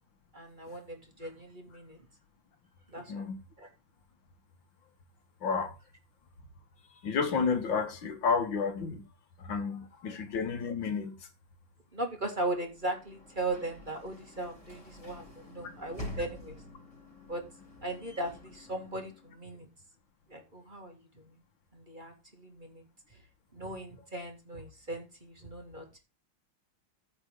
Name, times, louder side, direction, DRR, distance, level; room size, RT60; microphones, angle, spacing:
voice 1, 0.3-2.0 2.9-3.3 3.6-3.7 11.9-16.6 17.3-17.4 17.8-19.7 20.3-21.0 21.7-22.8 23.5-26.0, right 2 dB, 25° right, 2.4 m, -38 dB
voice 2, 3.1-3.4 5.4-5.7 7.0-9.0 9.4-11.3, left 5 dB, 75° left, 2.2 m, -31 dB
Sliding door / Slam, 12.6-19.6, left 1 dB, 15° left, 5.1 m, -48 dB
15.0 x 5.3 x 3.7 m
omnidirectional pair, 2.1 m